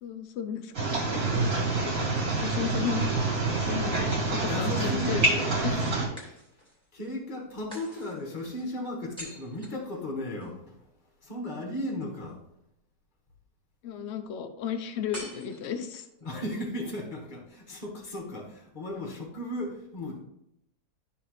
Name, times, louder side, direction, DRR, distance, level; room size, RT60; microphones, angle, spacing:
voice 1, 0.0-1.5 1.8-3.3 3.7-5.3 5.6-6.0 13.8-16.1, left 7 dB, 55° left, 8 dB, 0.8 m, -35 dB
sound 1, 0.7-6.1, right 2 dB, 55° right, 2.8 m, -27 dB
sound 2, 3.4-4.1 6.2-6.9 7.7-10.5 15.1-16.2, equal, 5° left, 2.4 m, -47 dB
voice 2, 4.5-5.8 6.2-6.4 6.9-10.7 11.2-12.4 16.2-20.2, left 1 dB, 30° left, 0 dB, 1.6 m, -36 dB
12.0 x 4.1 x 3.1 m, 0.80 s
omnidirectional pair, 1.8 m